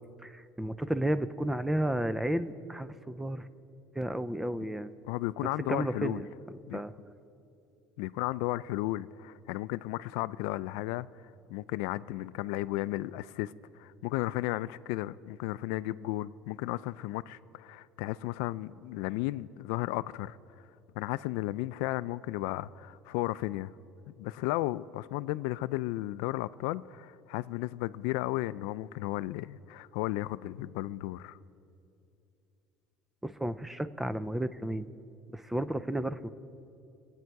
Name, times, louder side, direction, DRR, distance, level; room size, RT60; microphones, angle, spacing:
voice 1, 0.2-3.5 4.0-4.9 5.7-6.3 6.7-6.9 33.2-34.9 35.3-36.2, right 1 dB, 5° right, 0.4 m, -32 dB
voice 2, 5.1-6.2 6.7-6.8 8.0-11.1 11.5-20.4 21.0-23.7 24.1-31.4, left 17 dB, 85° left, 0.3 m, -34 dB
26.0 x 9.0 x 4.7 m
cardioid pair, 150°, 4 cm